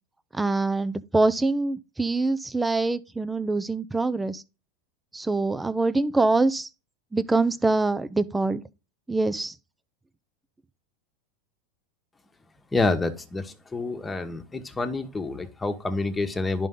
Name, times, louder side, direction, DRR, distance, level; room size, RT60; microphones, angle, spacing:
voice 1, 0.3-4.4 5.1-6.7 7.1-8.6 9.1-9.5, right 3 dB, 10° right, 0.7 m, -24 dB
voice 2, 12.7-16.7, left 3 dB, 15° left, 1.4 m, -28 dB
11.0 x 5.3 x 3.8 m
hypercardioid pair, 110°, 0 cm